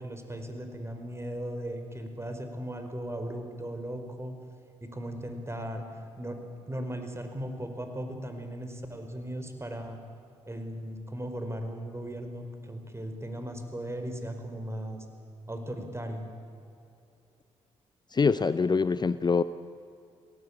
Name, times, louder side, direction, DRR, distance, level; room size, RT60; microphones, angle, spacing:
voice 1, 0.0-4.4 4.8-5.8 6.2-6.4 6.7-10.0 10.5-15.0 15.5-16.2, right 1 dB, 20° right, 6 dB, 4.5 m, -37 dB
voice 2, 18.1-19.4, left 5 dB, 30° left, 14 dB, 0.7 m, -24 dB
23.5 x 17.0 x 8.7 m, 2.6 s
hypercardioid pair, 45°, 14 cm